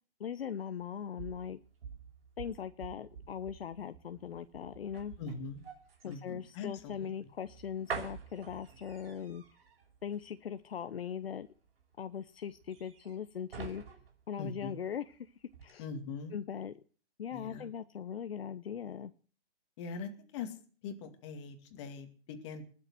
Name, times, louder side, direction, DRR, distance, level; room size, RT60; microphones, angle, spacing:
voice 1, 0.2-1.6 2.4-5.1 6.0-9.4 10.0-11.5 12.0-13.8 14.3-15.3 15.6-15.9 16.3-16.7 17.2-19.1, left 8 dB, 55° left, 11 dB, 0.9 m, -40 dB
sound 1, 0.8-15.2 15.5-15.7, right 6 dB, 55° right, 6.1 m, -48 dB
voice 2, 5.2-5.6 6.0-7.1 14.4-14.8 15.8-16.3 17.3-17.7 19.8-20.6 20.8-22.7, left 4 dB, 25° left, 6 dB, 2.3 m, -42 dB
20.5 x 7.4 x 7.7 m, 0.43 s
hypercardioid pair, 160°, 35 cm